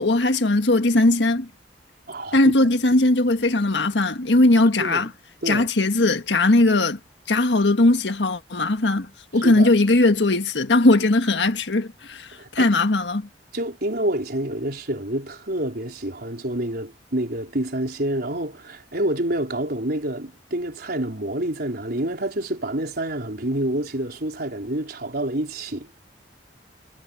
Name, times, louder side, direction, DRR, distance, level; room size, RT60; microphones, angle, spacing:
voice 1, 0.0-1.5 2.3-5.1 5.5-7.0 7.3-13.3, left 2 dB, 80° left, 1.6 m, -19 dB
voice 2, 2.1-2.5 3.0-3.1 4.8-5.0 5.4-5.7 9.4-9.7 12.4-12.7 13.5-25.9, right 1 dB, 60° right, 4.5 m, -28 dB
head